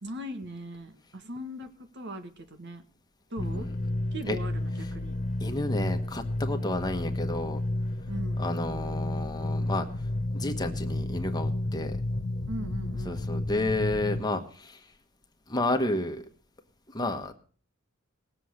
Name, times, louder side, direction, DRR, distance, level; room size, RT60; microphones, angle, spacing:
voice 1, 0.0-2.8 3.3-3.7 4.1-5.1 8.1-8.5 12.5-13.2, right 1 dB, 55° right, 8 dB, 1.7 m, -39 dB
sound 1, 3.4-14.2, left 1 dB, 35° left, 0.6 m, -31 dB
voice 2, 5.4-7.6 8.4-9.8 10.3-12.0 13.0-14.8 15.5-16.2 16.9-17.3, left 1 dB, 20° left, 5 dB, 1.4 m, -31 dB
19.0 x 7.9 x 6.6 m, 0.44 s
head